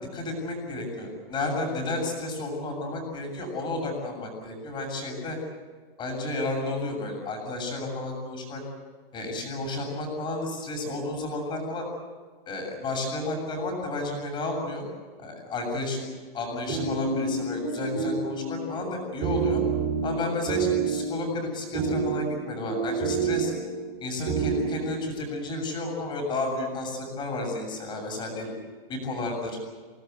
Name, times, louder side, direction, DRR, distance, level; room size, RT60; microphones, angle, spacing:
voice 1, 0.1-5.4 6.0-8.6 9.1-11.9 12.5-14.8 15.2-16.1 16.3-19.6 20.0-23.5 24.0-28.5 28.9-29.6, left 2 dB, 15° left, 2 dB, 7.4 m, -32 dB
sound 1, 16.4-24.9, right 4 dB, 25° right, 7.7 m, -29 dB
28.5 x 20.0 x 8.1 m, 1.5 s
hypercardioid pair, 165°, 30 cm